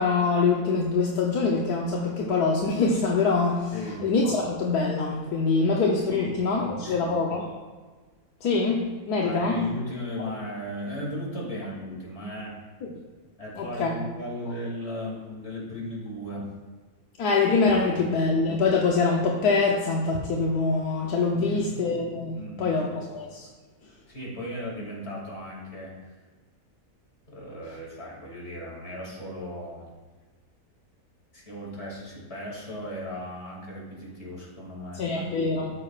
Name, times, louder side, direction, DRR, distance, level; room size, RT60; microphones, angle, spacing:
voice 1, 0.0-3.7 4.0-7.6 8.4-9.6 13.6-13.9 17.2-23.5 34.9-35.7, left 4 dB, 75° left, -1 dB, 1.4 m, -24 dB
voice 2, 3.7-4.0 6.1-7.1 9.2-12.6 13.4-16.5 17.8-18.1 21.3-21.7 22.3-22.8 24.1-26.2 27.3-29.9 31.3-35.3, left 1 dB, 40° left, -4 dB, 2.8 m, -36 dB
13.5 x 6.5 x 2.4 m, 1.4 s
omnidirectional pair, 1.7 m